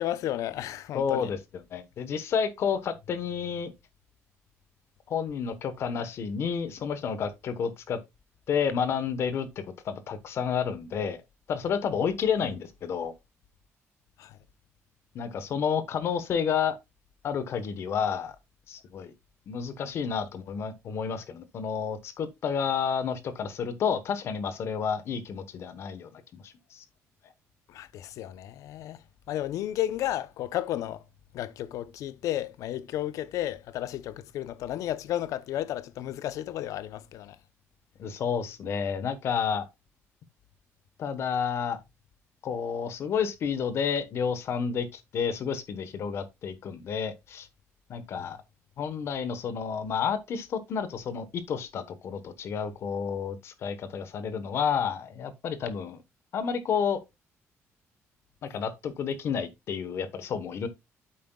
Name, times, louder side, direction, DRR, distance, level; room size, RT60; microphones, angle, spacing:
voice 1, 0.0-1.3 14.2-14.4 27.7-31.0 31.3-37.4 48.1-48.3, left 12 dB, 85° left, 0.7 m, -33 dB
voice 2, 0.9-1.4 1.7-3.7 5.1-8.0 8.5-9.5 9.8-11.2 11.5-13.1 15.1-16.8 17.2-18.4 18.7-19.1 19.5-26.8 38.0-39.7 41.0-41.8 42.4-47.5 47.9-48.4 48.8-56.0 56.3-57.0 58.4-60.7, left 7 dB, 50° left, 1.1 m, -30 dB
8.5 x 7.7 x 2.3 m
cardioid pair, 170°, 5 cm